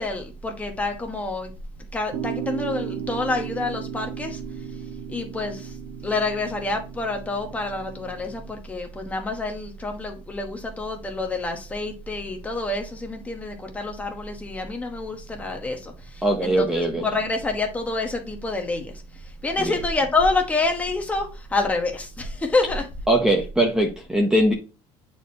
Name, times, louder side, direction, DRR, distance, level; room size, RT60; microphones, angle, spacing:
voice 1, 0.0-1.5 1.9-4.4 5.1-5.7 6.0-16.6 17.0-18.9 19.4-22.9, left 3 dB, 10° left, 1.1 m, -27 dB
sound 1, 2.1-8.5, right 8 dB, 40° right, 0.7 m, -35 dB
voice 2, 16.2-17.1 19.6-19.8 23.1-24.5, right 1 dB, 5° right, 0.8 m, -21 dB
9.0 x 4.4 x 2.8 m
cardioid pair, 175°, 12 cm